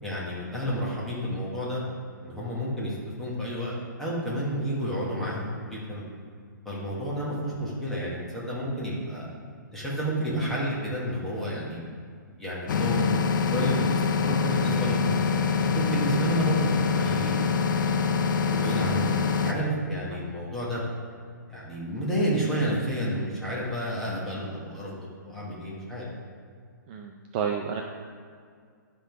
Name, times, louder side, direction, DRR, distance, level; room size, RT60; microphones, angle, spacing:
voice 1, 0.0-1.8 2.2-3.7 4.0-6.0 6.6-9.2 9.7-11.8 12.4-15.2 15.6-17.9 18.5-20.8 21.5-24.9 25.2-26.0, equal, 5° left, -8 dB, 1.4 m, -30 dB
sound 1, 12.7-19.5, left 5 dB, 70° left, 0.5 m, -25 dB
voice 2, 26.9-27.8, right 7 dB, 30° right, 2 dB, 0.4 m, -31 dB
10.0 x 3.7 x 4.6 m, 2.1 s
hypercardioid pair, 155°, 11 cm